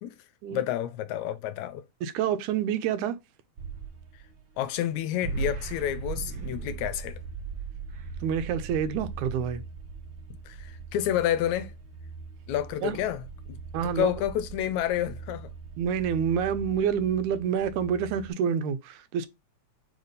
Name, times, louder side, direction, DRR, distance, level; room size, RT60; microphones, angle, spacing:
voice 1, 0.5-1.8 4.6-7.2 10.5-11.7 12.5-13.6 13.8-15.5, left 11 dB, 80° left, 1.9 m, -29 dB
voice 2, 2.0-3.2 8.2-9.6 12.8-13.0 13.7-14.1 15.8-19.3, right 8 dB, 85° right, 2.1 m, -28 dB
sound 1, 3.6-5.0 5.2-18.3, right 5 dB, 65° right, 1.1 m, -39 dB
4.8 x 4.0 x 5.0 m
omnidirectional pair, 3.4 m